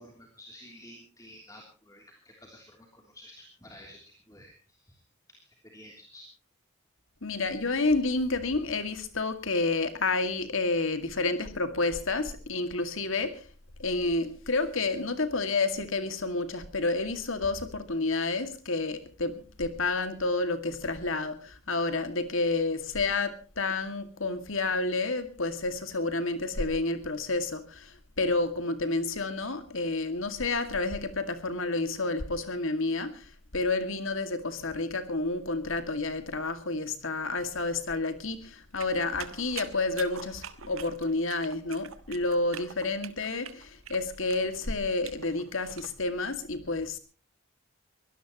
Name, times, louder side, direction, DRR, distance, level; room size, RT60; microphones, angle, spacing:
voice 1, 0.0-5.0 5.3-6.3, left 1 dB, 15° left, 1 dB, 3.2 m, -51 dB
voice 2, 7.2-13.5 13.8-47.0, left 3 dB, 70° left, 9 dB, 2.2 m, -30 dB
sound 1, 38.8-45.9, right 8 dB, 75° right, 1.5 m, -45 dB
23.5 x 17.5 x 3.0 m, 0.35 s
head